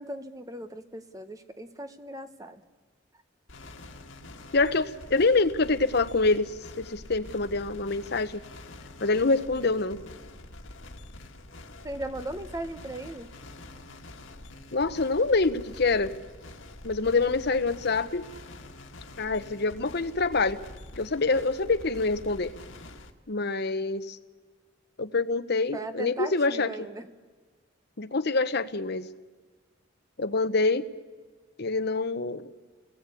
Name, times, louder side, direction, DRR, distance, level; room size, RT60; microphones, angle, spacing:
voice 1, 0.0-2.6 11.8-13.3 25.7-27.1, right 1 dB, 15° right, 8 dB, 1.1 m, -38 dB
sound 1, 3.5-23.1, left 2 dB, 85° left, 1.8 m, -46 dB
voice 2, 4.5-8.4 9.0-10.0 14.7-16.1 16.8-18.2 19.2-20.6 21.0-22.5 23.3-24.2 25.0-26.9 28.0-29.1 30.2-30.9 31.6-32.5, left 3 dB, 55° left, 10 dB, 0.9 m, -26 dB
29.5 x 19.5 x 8.4 m, 1.4 s
head